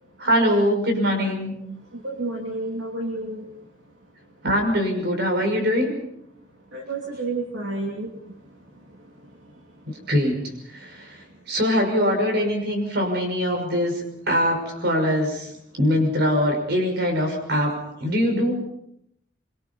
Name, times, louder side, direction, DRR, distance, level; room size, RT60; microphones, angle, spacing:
voice 1, 0.2-1.5 4.4-5.9 10.1-10.4 10.7-11.2 11.5-15.5 15.8-18.5, equal, 55° right, 4 dB, 6.0 m, -22 dB
voice 2, 1.9-3.5 6.7-8.1, right 2 dB, 75° right, 0 dB, 3.0 m, -30 dB
25.0 x 24.0 x 5.5 m, 0.74 s
head